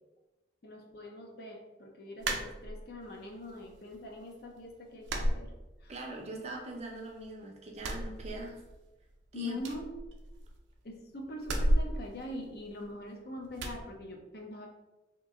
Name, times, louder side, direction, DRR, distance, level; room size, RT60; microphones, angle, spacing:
voice 1, 0.6-5.5 5.8-5.9 9.3-9.9 10.8-14.7, left 1 dB, 55° left, 2 dB, 0.5 m, -43 dB
sound 1, 2.2-3.1 3.5-4.2 4.4-4.6 5.0-6.2 6.5-7.3 7.7-8.9 9.1-9.2 9.6-10.7 11.4-13.1 13.6-13.8, right 1 dB, 85° right, 0.5 m, -33 dB
voice 2, 5.9-8.6 9.3-9.6, right 2 dB, 35° right, 0 dB, 0.5 m, -41 dB
2.9 x 2.5 x 3.6 m, 1.1 s
head